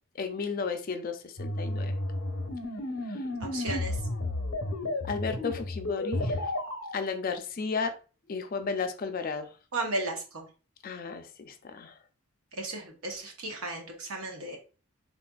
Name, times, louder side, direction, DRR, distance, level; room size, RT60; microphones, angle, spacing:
voice 1, 0.2-2.0 3.1-3.2 5.0-6.4 6.9-7.9 8.3-9.5 10.8-11.9, left 5 dB, 40° left, 7 dB, 0.3 m, -33 dB
sound 1, 1.4-6.9, left 1 dB, 80° left, 0.7 m, -32 dB
voice 2, 3.4-4.0 9.7-10.5 12.5-14.6, right 2 dB, 85° right, 2 dB, 0.8 m, -35 dB
3.7 x 2.4 x 2.2 m, 0.37 s
head